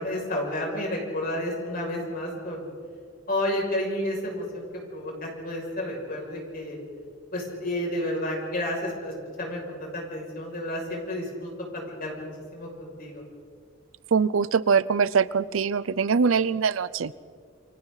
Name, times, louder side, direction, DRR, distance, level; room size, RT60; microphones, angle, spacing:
voice 1, 0.0-2.7 3.3-6.8 7.3-13.2, left 1 dB, 45° left, -1 dB, 6.4 m, -31 dB
voice 2, 14.1-17.1, right 5 dB, 85° right, 18 dB, 0.6 m, -23 dB
29.0 x 24.5 x 4.1 m, 2.2 s
head